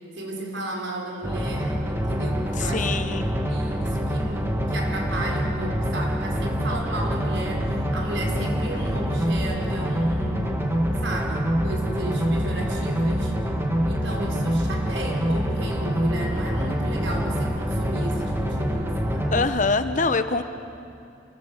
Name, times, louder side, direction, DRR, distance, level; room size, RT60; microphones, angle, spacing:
voice 1, 0.1-10.5 11.0-13.3 13.9-19.3, right 1 dB, 70° right, 1 dB, 4.9 m, -34 dB
sound 1, 1.2-19.5, equal, 10° right, 2.0 m, -25 dB
voice 2, 2.6-3.2 19.3-20.4, left 4 dB, 40° left, 10 dB, 1.0 m, -24 dB
27.5 x 21.5 x 8.1 m, 2.7 s
head